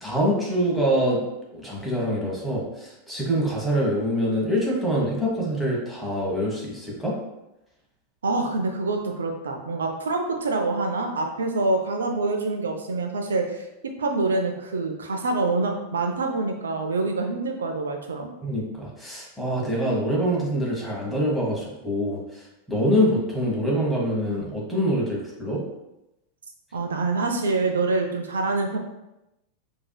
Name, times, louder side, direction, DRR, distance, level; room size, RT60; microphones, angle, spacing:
voice 1, 0.0-1.2 1.5-7.1 18.4-22.2 22.7-25.6, equal, ahead, -4 dB, 1.1 m, -25 dB
voice 2, 8.2-18.3 26.7-28.8, right 3 dB, 70° right, 4 dB, 0.5 m, -26 dB
4.7 x 2.8 x 2.2 m, 0.91 s
figure-of-eight pair, 90°, 0 cm